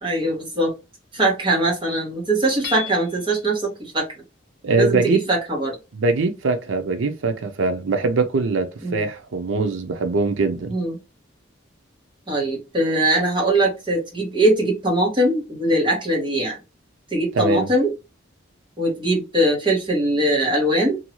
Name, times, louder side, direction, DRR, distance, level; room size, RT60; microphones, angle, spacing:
voice 1, 0.0-0.7 1.1-4.1 4.8-5.8 8.8-9.0 10.7-11.0 12.3-16.6 17.1-17.9 18.8-21.0, right 1 dB, 25° right, 1.0 m, -21 dB
Hammer / Chink clink, 2.6-3.4, left 9 dB, 55° left, 0.7 m, -33 dB
voice 2, 4.6-5.2 5.9-10.8 17.3-17.7, right 3 dB, 80° right, 0.5 m, -22 dB
2.6 x 2.3 x 2.9 m
head